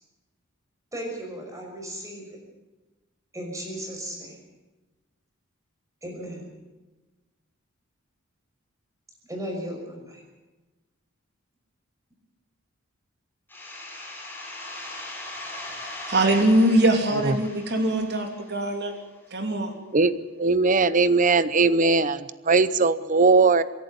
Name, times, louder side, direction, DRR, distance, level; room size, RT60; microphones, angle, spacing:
voice 1, 0.9-2.4 3.3-4.4 6.0-6.4 9.3-10.2, equal, 15° right, 5.8 m, -35 dB
sound 1, 13.5-19.0, left 1 dB, 10° left, 4.1 m, -39 dB
voice 2, 15.7-18.9 19.3-19.7, right 1 dB, 55° right, 3.2 m, -22 dB
voice 3, 20.4-23.6, right 4 dB, 40° right, 0.8 m, -19 dB
26.0 x 11.5 x 9.2 m
head